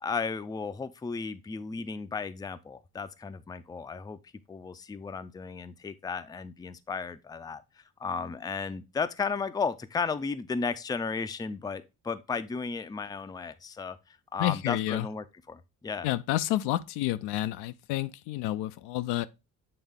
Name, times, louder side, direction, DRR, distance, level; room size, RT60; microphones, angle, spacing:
voice 1, 0.0-4.2 4.5-7.6 8.0-14.0 14.3-16.1, left 5 dB, 10° left, 0.4 m, -34 dB
voice 2, 14.4-15.1 16.0-19.3, left 15 dB, 65° left, 0.5 m, -30 dB
7.7 x 3.5 x 3.5 m
hypercardioid pair, 50°, 44 cm